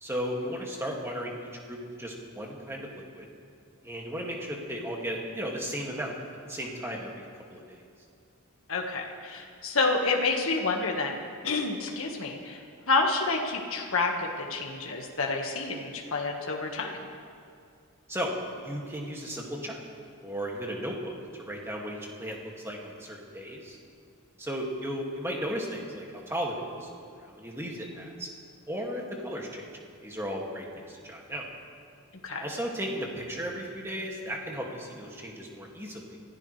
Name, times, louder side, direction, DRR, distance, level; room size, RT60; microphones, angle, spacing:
voice 1, 0.0-1.3 1.7-3.3 3.8-6.1 6.5-7.2 7.5-7.8 18.1-18.3 18.6-19.8 20.2-21.1 21.4-23.8 24.4-28.3 28.7-29.7 30.0-31.4 32.4-36.2, equal, 10° right, -2 dB, 2.2 m, -35 dB
voice 2, 8.7-11.2 11.4-12.6 12.9-17.0 32.2-32.4, left 3 dB, 65° left, 1 dB, 1.7 m, -29 dB
25.0 x 15.5 x 3.4 m, 2.4 s
head